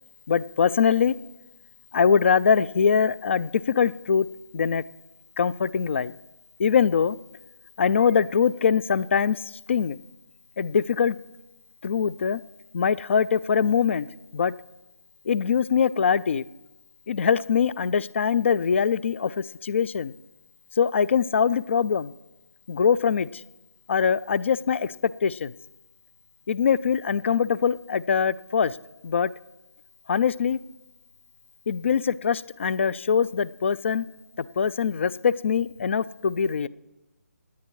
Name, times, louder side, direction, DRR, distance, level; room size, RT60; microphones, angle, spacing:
voice 1, 0.3-1.1 1.9-4.3 4.5-4.8 5.4-6.1 6.6-7.2 7.8-9.4 9.7-10.0 10.6-11.2 11.8-12.4 12.7-14.1 14.3-14.5 15.3-16.4 17.1-20.1 20.8-22.1 22.7-23.4 23.9-25.5 26.5-28.8 29.0-29.3 30.1-30.6 31.7-34.0 34.4-36.7, left 6 dB, 45° left, 21 dB, 0.4 m, -23 dB
26.5 x 9.5 x 3.1 m, 1.0 s
figure-of-eight pair, 150°, 9 cm